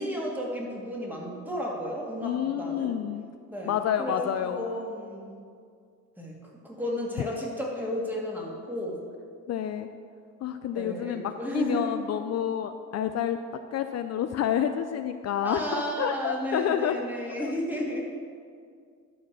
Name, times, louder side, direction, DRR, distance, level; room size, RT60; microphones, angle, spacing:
voice 1, 0.0-2.9 3.5-4.2 4.6-5.4 6.2-6.4 6.6-9.0 10.7-12.0 15.4-18.0, equal, 5° right, -3 dB, 2.3 m, -33 dB
voice 2, 2.2-3.2 3.7-4.7 9.5-9.9 10.4-13.4 13.7-17.0 17.3-17.5, left 9 dB, 60° left, 8 dB, 0.5 m, -29 dB
11.5 x 4.3 x 6.7 m, 2.2 s
cardioid pair, 90°, 30 cm